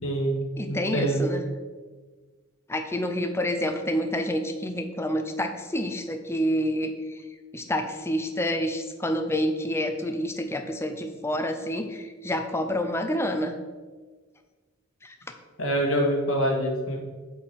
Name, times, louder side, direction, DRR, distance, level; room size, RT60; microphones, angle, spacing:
voice 1, 0.0-0.4 0.7-1.3 15.6-17.0, right 1 dB, 80° left, 0 dB, 1.6 m, -25 dB
voice 2, 0.6-1.4 2.7-7.2 7.5-13.6 15.0-15.1, equal, 10° left, 6 dB, 0.5 m, -28 dB
7.1 x 4.9 x 4.4 m, 1.4 s
head